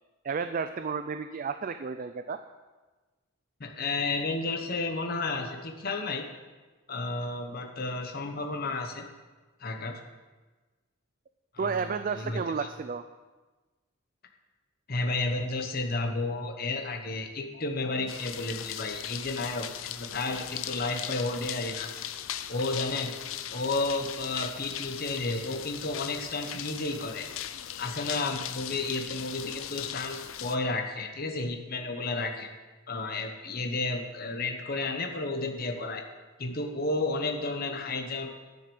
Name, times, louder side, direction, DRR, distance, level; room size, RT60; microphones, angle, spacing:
voice 1, 0.2-2.4 11.6-13.1, right 5 dB, 40° right, 9 dB, 0.3 m, -32 dB
voice 2, 3.6-6.2 6.9-9.1 9.6-10.0 11.5-11.9 12.2-12.4 14.9-21.9 22.5-23.1 23.5-27.3 27.8-32.5 32.9-36.0 36.4-38.3, left 3 dB, 45° left, 4 dB, 1.0 m, -32 dB
sound 1, 18.1-30.6, left 11 dB, 75° left, 0.5 m, -39 dB
10.0 x 6.6 x 6.9 m, 1.3 s
head